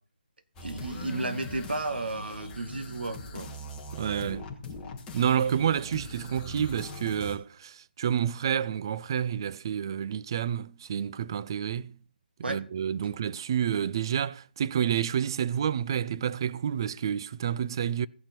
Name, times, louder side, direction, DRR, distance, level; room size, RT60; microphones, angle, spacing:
sound 1, 0.6-7.4, left 1 dB, 10° left, 1.4 m, -41 dB
voice 1, 0.6-3.5 12.4-12.6, right 2 dB, 75° right, 1.7 m, -33 dB
voice 2, 3.9-4.5 5.1-12.0 12.5-18.1, right 9 dB, 25° right, 0.3 m, -29 dB
16.0 x 5.9 x 4.4 m
figure-of-eight pair, 165°, 5 cm